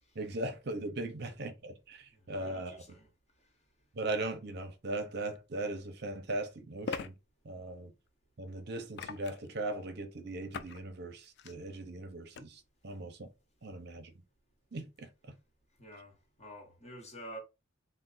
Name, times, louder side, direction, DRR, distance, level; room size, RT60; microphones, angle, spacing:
voice 1, 0.1-2.8 3.9-7.1 7.4-7.9 8.4-13.3 13.6-14.1 14.7-15.3, right 2 dB, 55° right, 0.7 m, -39 dB
voice 2, 2.1-3.1 15.8-17.4, right 1 dB, 35° left, 1.1 m, -49 dB
sound 1, 5.3-5.4 6.8-7.1 8.9-9.5 10.5-10.8 11.2-11.5 12.3-12.4, left 5 dB, 55° left, 0.3 m, -40 dB
3.2 x 2.1 x 3.9 m
head